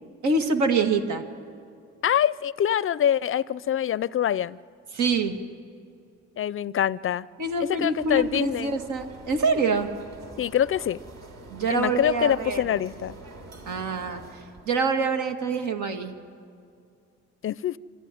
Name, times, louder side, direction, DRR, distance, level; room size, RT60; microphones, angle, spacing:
voice 1, 0.2-1.2 4.9-5.3 7.4-9.9 11.5-12.8 13.7-14.2 14.7-16.2, right 4 dB, 85° right, 6 dB, 2.0 m, -25 dB
voice 2, 2.0-4.6 6.4-7.3 7.6-8.8 10.4-11.0 11.7-13.1 17.4-17.8, left 10 dB, 45° left, 21 dB, 0.4 m, -25 dB
sound 1, 8.0-14.8, right 2 dB, 65° right, 3.5 m, -45 dB
25.5 x 14.5 x 10.0 m, 2.3 s
cardioid pair, 90°, 30 cm